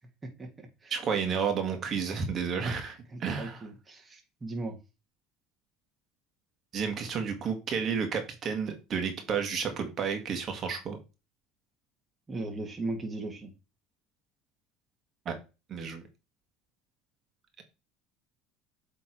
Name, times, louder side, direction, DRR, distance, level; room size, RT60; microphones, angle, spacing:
voice 1, 0.2-0.9 2.6-2.8 3.1-4.7 12.3-13.5, right 2 dB, 20° right, 3 dB, 1.6 m, -38 dB
voice 2, 0.9-2.9 3.2-3.6 6.7-11.0 15.2-15.3 15.7-16.0, right 6 dB, 45° right, 6 dB, 1.6 m, -31 dB
7.9 x 3.5 x 4.5 m, 0.29 s
supercardioid pair, 100°, 0 cm